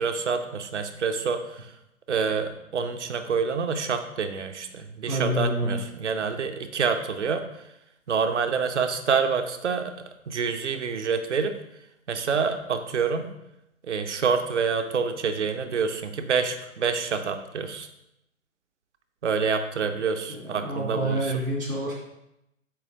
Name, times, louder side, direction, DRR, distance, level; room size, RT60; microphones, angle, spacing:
voice 1, 0.0-1.7 2.1-7.4 8.1-11.6 12.1-13.3 13.8-17.9 19.2-21.3, right 5 dB, 60° right, 8 dB, 0.9 m, -27 dB
voice 2, 5.1-5.8 20.3-21.9, right 1 dB, 85° right, -4 dB, 2.6 m, -28 dB
8.2 x 3.4 x 5.1 m, 0.84 s
figure-of-eight pair, 125°, 40 cm